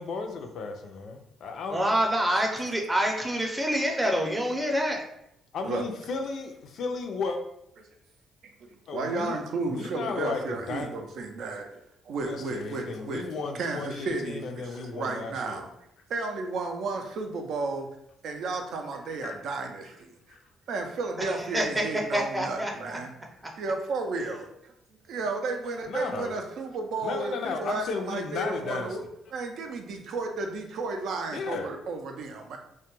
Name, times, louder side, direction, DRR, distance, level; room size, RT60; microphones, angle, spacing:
voice 1, 0.0-1.8 5.5-7.4 8.9-10.9 12.2-15.6 19.2-19.4 20.3-20.4 25.9-26.3 27.0-29.0 31.3-31.7, left 4 dB, 70° left, 5 dB, 0.3 m, -34 dB
voice 2, 1.7-5.0 21.2-23.0, equal, 15° right, 1 dB, 0.5 m, -27 dB
voice 3, 8.6-13.2 13.5-15.7 16.1-17.9 18.2-20.1 20.7-23.1 23.6-24.7 25.1-29.0 29.3-32.6, right 3 dB, 75° right, 4 dB, 0.4 m, -33 dB
2.2 x 2.1 x 2.9 m, 0.78 s
cardioid pair, 90°, 0 cm